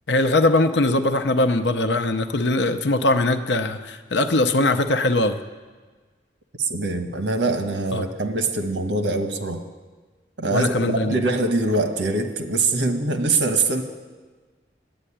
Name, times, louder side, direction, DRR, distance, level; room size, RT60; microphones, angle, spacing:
voice 1, 0.1-5.4 7.9-8.1 10.5-11.2, left 2 dB, 85° left, 8 dB, 0.7 m, -21 dB
voice 2, 6.6-9.6 10.4-13.8, right 3 dB, 85° right, 7 dB, 1.2 m, -23 dB
12.0 x 9.0 x 10.0 m, 1.4 s
head